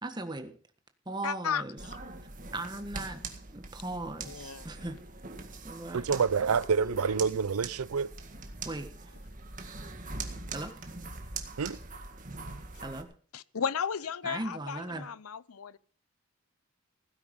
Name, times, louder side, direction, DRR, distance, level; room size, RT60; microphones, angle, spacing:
voice 1, 0.0-0.5 1.0-1.8 2.5-3.2 3.5-5.0 5.6-6.0 8.6-9.1 10.5-10.7 12.8-13.1 14.2-15.1, right 2 dB, 20° right, 1.5 m, -38 dB
voice 2, 1.2-1.6 4.3-4.7 13.3-15.8, left 7 dB, 80° left, 0.6 m, -34 dB
sound 1, 1.8-13.0, right 3 dB, 35° right, 1.8 m, -42 dB
voice 3, 5.9-8.1 11.6-11.8, right 6 dB, 85° right, 0.5 m, -27 dB
16.5 x 9.8 x 5.4 m
head